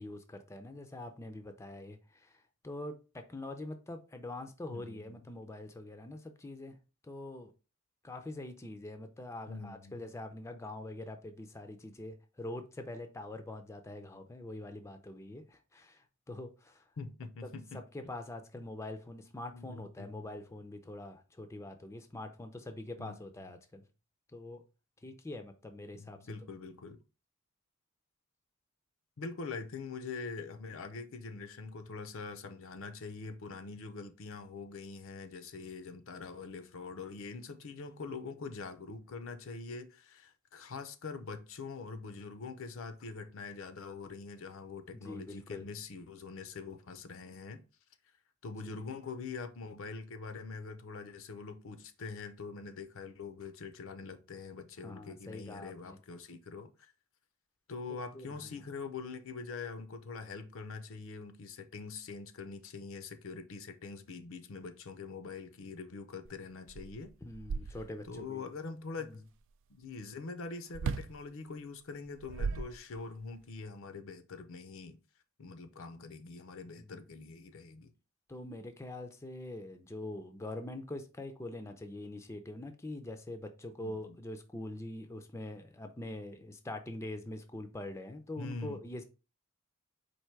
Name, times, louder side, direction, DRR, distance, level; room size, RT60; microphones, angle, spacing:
voice 1, 0.0-6.8 7.0-7.5 8.0-16.8 17.4-23.8 24.3-24.6 25.0-26.3 44.9-45.6 48.5-48.7 54.8-56.0 58.1-58.7 67.2-68.4 69.0-69.2 76.8-77.0 78.3-89.0, left 1 dB, 15° left, 0.4 m, -44 dB
voice 2, 4.7-5.2 9.5-10.0 17.0-17.8 19.5-20.2 23.0-23.1 25.9-27.0 29.2-47.6 48.4-56.9 57.7-67.1 68.1-69.2 69.7-75.0 75.4-77.9 83.8-84.2 88.4-88.8, left 4 dB, 65° left, 0.6 m, -44 dB
sound 1, 66.2-66.3 66.7-68.2 70.7-71.2 72.0-73.2, right 5 dB, 60° right, 0.3 m, -37 dB
4.5 x 2.6 x 4.4 m
head